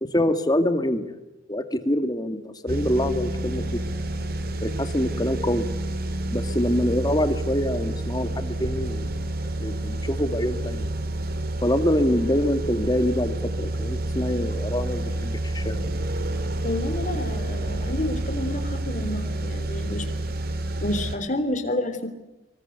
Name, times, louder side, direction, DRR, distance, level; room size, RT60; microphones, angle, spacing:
voice 1, 0.0-1.1 1.5-3.8 4.6-5.6 6.3-9.2 9.6-10.9 11.6-15.8, left 1 dB, 20° left, 9 dB, 2.2 m, -25 dB
sound 1, 2.7-21.2, right 1 dB, 50° right, 2.8 m, -29 dB
voice 2, 16.6-20.1 20.8-22.1, left 1 dB, 40° left, 8 dB, 3.8 m, -29 dB
25.5 x 24.5 x 8.2 m, 0.99 s
head